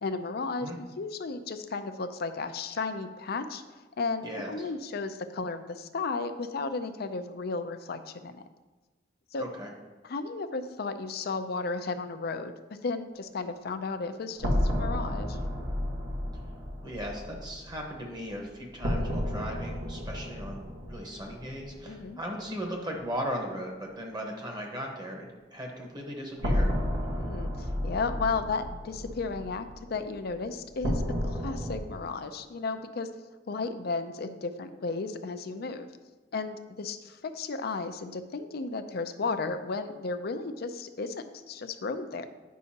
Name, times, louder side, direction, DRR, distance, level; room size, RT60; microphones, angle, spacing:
voice 1, 0.0-8.4 9.3-9.4 10.0-12.5 12.8-15.4 21.9-22.2 27.0-35.9 36.3-42.3, left 4 dB, 55° left, 9 dB, 0.5 m, -34 dB
voice 2, 4.2-4.7 9.4-9.7 16.8-26.7, equal, 25° right, 1 dB, 1.2 m, -37 dB
sound 1, 14.4-22.2 22.5-22.6 26.4-31.8, equal, 75° right, 1.5 m, -32 dB
9.3 x 5.5 x 2.9 m, 1.2 s
head